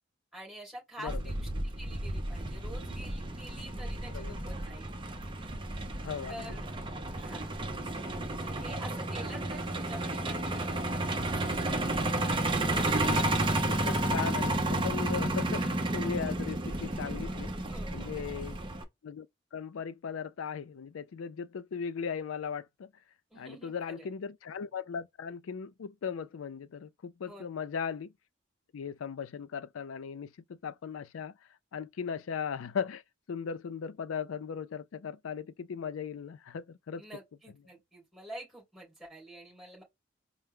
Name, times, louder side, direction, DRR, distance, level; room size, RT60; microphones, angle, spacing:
voice 1, 0.3-4.9 6.3-6.6 7.1-7.5 8.4-11.8 17.7-18.3 23.3-24.1 27.3-27.4 37.0-39.8, right 1 dB, ahead, 2.9 m, -48 dB
Truck, 1.1-18.8, right 1 dB, 25° right, 0.6 m, -32 dB
voice 2, 6.0-6.6 13.7-17.5 17.9-18.6 19.0-19.3 19.5-22.9 23.4-28.1 28.7-31.3 31.7-33.0 33.3-37.0, left 6 dB, 85° left, 0.4 m, -38 dB
4.4 x 2.0 x 3.6 m
head